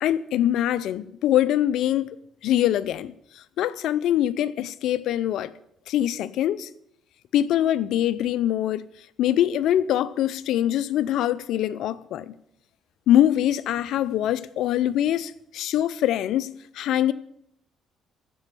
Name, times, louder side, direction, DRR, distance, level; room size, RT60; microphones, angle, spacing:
voice 1, 0.0-2.2 2.4-3.1 3.6-5.5 5.9-6.7 7.3-8.9 9.2-12.4 13.1-17.1, left 11 dB, 75° left, 0.5 m, -23 dB
14.5 x 5.3 x 8.4 m
supercardioid pair, 70°, 0 cm